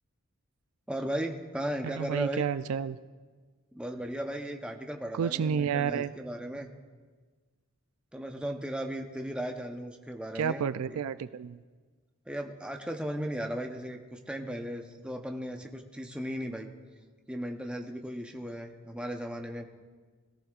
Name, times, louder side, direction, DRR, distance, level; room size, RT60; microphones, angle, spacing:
voice 1, 0.9-2.4 3.7-6.7 8.1-11.0 12.3-16.7 17.3-19.6, right 1 dB, 5° right, 3 dB, 0.8 m, -36 dB
voice 2, 1.8-3.0 5.1-6.1 10.3-11.6, right 7 dB, 75° right, 13 dB, 0.4 m, -30 dB
21.0 x 14.0 x 2.4 m, 1.4 s
head